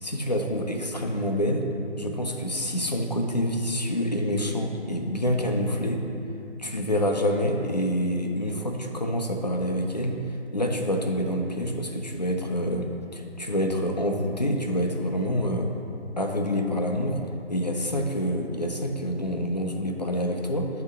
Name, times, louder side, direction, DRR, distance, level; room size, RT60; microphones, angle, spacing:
voice 1, 0.0-1.7 2.0-6.0 6.6-10.2 10.5-15.7 16.2-17.2 17.5-20.8, equal, 40° left, 2 dB, 0.4 m, -27 dB
7.6 x 2.8 x 5.0 m, 2.7 s
hypercardioid pair, 175°, 33 cm